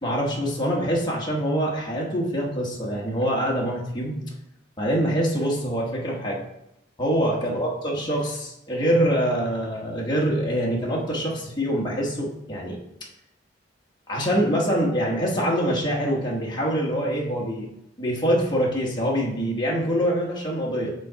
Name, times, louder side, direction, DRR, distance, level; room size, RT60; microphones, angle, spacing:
voice 1, 0.0-4.2 4.8-6.4 7.0-12.8 14.1-17.7 18.0-20.9, equal, 25° left, -3 dB, 1.1 m, -25 dB
5.1 x 3.9 x 5.5 m, 0.81 s
head